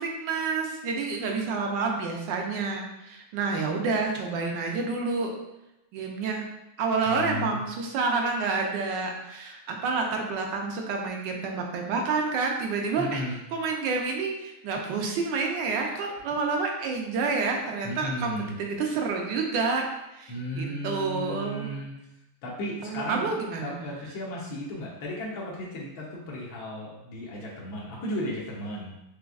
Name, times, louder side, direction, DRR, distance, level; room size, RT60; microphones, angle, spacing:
voice 1, 0.0-5.3 5.9-6.4 6.8-13.2 13.5-19.9 20.1-21.7 22.8-23.8, right 4 dB, 70° right, 1 dB, 1.3 m, -29 dB
voice 2, 7.0-7.6 13.0-13.4 17.8-18.5 20.3-21.9 22.4-23.3 23.6-29.0, left 1 dB, 85° left, -4 dB, 1.5 m, -35 dB
5.1 x 3.2 x 2.3 m, 0.90 s
omnidirectional pair, 2.1 m